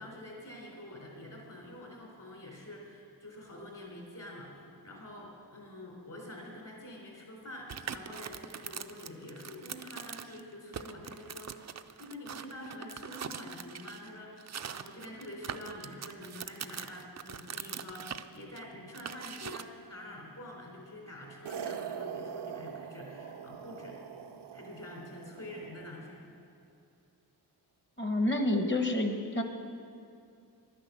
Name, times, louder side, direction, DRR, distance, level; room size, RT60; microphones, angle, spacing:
voice 1, 0.0-4.5 4.8-24.0 24.5-26.2, left 1 dB, 50° left, -2 dB, 3.8 m, -46 dB
sound 1, 7.7-10.4 10.7-14.1 14.4-19.7, right 7 dB, 45° right, 0.4 m, -42 dB
sound 2, 21.5-25.9, right 7 dB, 85° right, 0.6 m, -42 dB
voice 2, 28.0-29.4, left 1 dB, 30° left, 5 dB, 1.2 m, -28 dB
11.5 x 10.0 x 7.5 m, 2.5 s
wide cardioid pair, 140°, 40 cm